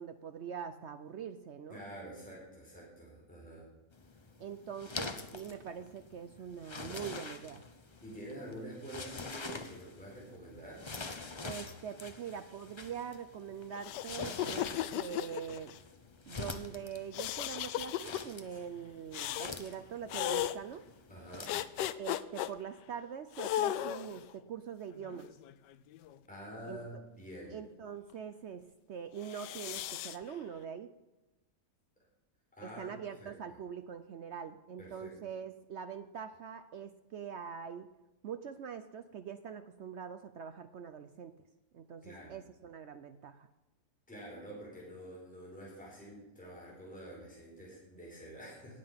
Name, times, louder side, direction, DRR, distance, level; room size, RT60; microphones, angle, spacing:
voice 1, 0.0-1.8 4.4-7.6 11.4-15.7 16.3-20.8 21.9-25.3 26.6-27.0 27.5-30.9 32.6-37.9 38.2-41.3 41.7-43.5, right 7 dB, 80° right, 10 dB, 0.6 m, -43 dB
voice 2, 1.7-3.7 8.0-10.9 18.5-18.6 21.1-21.6 26.3-27.6 32.5-33.3 34.8-35.1 42.0-42.4 44.1-48.8, right 1 dB, 5° left, -4 dB, 4.2 m, -48 dB
Leather Jacket Wooshes, 3.9-21.7, left 3 dB, 45° left, 0.3 m, -46 dB
sound 1, 13.7-15.8 17.1-18.2 19.1-19.5 20.1-20.6 21.5-22.5 23.3-24.2 25.0-26.2 29.2-30.2, left 12 dB, 75° left, 1.2 m, -36 dB
19.0 x 7.7 x 5.7 m, 1.0 s
omnidirectional pair, 1.9 m